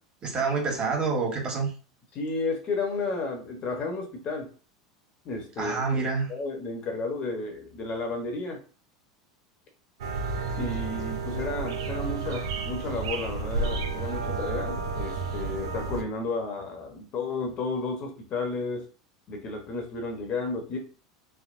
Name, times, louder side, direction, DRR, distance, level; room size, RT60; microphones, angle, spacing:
voice 1, 0.2-1.7 5.6-6.3, right 4 dB, 35° right, 1 dB, 1.2 m, -27 dB
voice 2, 2.1-4.5 5.2-8.6 10.6-18.9 19.3-20.8, left 3 dB, 40° left, 3 dB, 0.9 m, -32 dB
sound 1, 10.0-16.0, right 4 dB, 75° right, 0.6 m, -31 dB
3.4 x 2.1 x 2.5 m, 0.38 s
hypercardioid pair, 85°, 3 cm